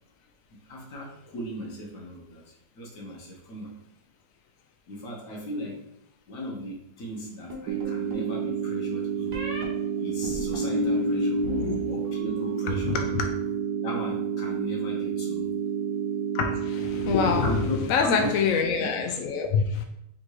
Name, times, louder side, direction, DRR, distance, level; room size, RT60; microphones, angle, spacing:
voice 1, 0.7-2.4 2.7-3.7 4.9-5.8 6.3-9.3 10.0-11.4 11.8-12.9 13.8-15.5 17.4-18.4 18.8-18.9, equal, 55° left, -1 dB, 1.4 m, -36 dB
sound 1, 7.5-8.3 9.3-9.6 10.2-11.8 12.0-12.6, left 3 dB, 45° right, 0.9 m, -30 dB
sound 2, 7.7-17.7, right 7 dB, 70° right, 1.1 m, -30 dB
voice 2, 11.5-11.8 12.8-13.3 16.3-17.5 17.9-19.8, left 5 dB, 75° left, 4 dB, 0.7 m, -25 dB
3.7 x 2.7 x 4.6 m, 0.78 s
omnidirectional pair, 1.9 m